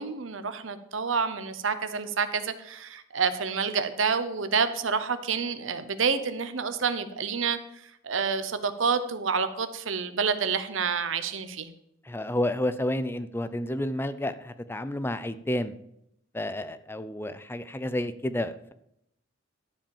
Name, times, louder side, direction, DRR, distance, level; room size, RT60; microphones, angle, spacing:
voice 1, 0.0-7.6 8.0-11.7, right 5 dB, 80° right, 11 dB, 0.9 m, -28 dB
voice 2, 12.1-15.7 16.3-18.7, left 1 dB, 10° left, 12 dB, 0.6 m, -30 dB
12.0 x 5.0 x 7.1 m, 0.76 s
head